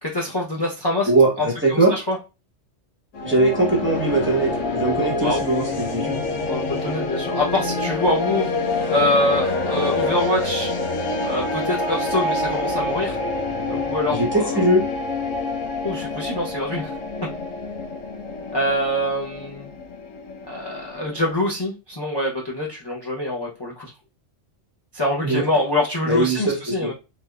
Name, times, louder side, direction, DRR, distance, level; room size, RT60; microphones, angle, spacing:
voice 1, 0.0-1.1 1.4-2.2 5.2-5.5 6.5-8.5 8.9-10.7 11.2-13.2 13.7-14.6 15.8-16.9 18.5-19.7 20.5-23.9 24.9-26.9, left 1 dB, 30° left, -2 dB, 0.5 m, -25 dB
voice 2, 1.1-1.9 3.2-6.2 14.1-14.8 25.2-25.4 26.0-26.9, right 2 dB, 10° right, -3 dB, 0.7 m, -20 dB
sound 1, 3.1-21.3, left 2 dB, 90° left, 1.0 m, -27 dB
3.4 x 2.9 x 2.3 m, 0.29 s
omnidirectional pair, 1.2 m